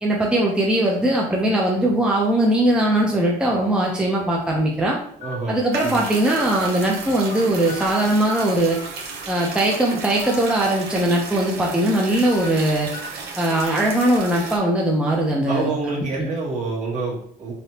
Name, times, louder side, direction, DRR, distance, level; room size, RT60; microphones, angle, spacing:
voice 1, 0.0-5.0 5.5-8.8 9.3-12.9 13.4-16.3, right 1 dB, 5° right, -2 dB, 0.5 m, -20 dB
sound 1, 2.2-2.5 3.2-3.3 4.4-4.5 5.2-5.3 5.8-5.9 6.3-7.4 7.7-8.4 8.7-8.8 10.1-10.4 10.8-10.9 12.2-12.5 12.9-13.0 13.5-13.6 14.3-14.4, left 6 dB, 85° left, 0.7 m, -37 dB
voice 2, 5.2-6.0 15.5-17.5, right 3 dB, 45° right, -4 dB, 1.4 m, -27 dB
sound 2, 5.7-14.6, right 4 dB, 75° right, 0.7 m, -34 dB
3.3 x 2.7 x 2.8 m, 0.64 s
cardioid pair, 110°, 17 cm